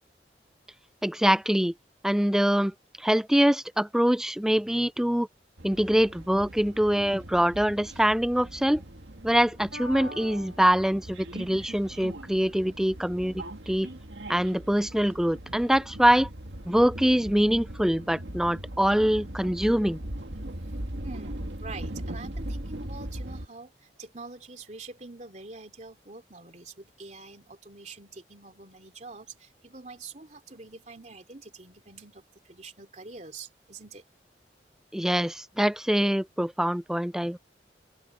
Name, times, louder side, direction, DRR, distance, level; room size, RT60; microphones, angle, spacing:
voice 1, 1.0-1.7 2.0-5.3 5.6-8.8 9.2-13.9 14.3-16.3 16.7-20.0 34.9-37.4, equal, 5° right, 0.3 m, -24 dB
UBahn-Berlin Atmo mit Ansage Schlesisches Tor, 5.6-23.5, right 1 dB, 80° right, 2.1 m, -40 dB
voice 2, 21.0-34.0, right 3 dB, 40° right, 2.9 m, -45 dB
open air
head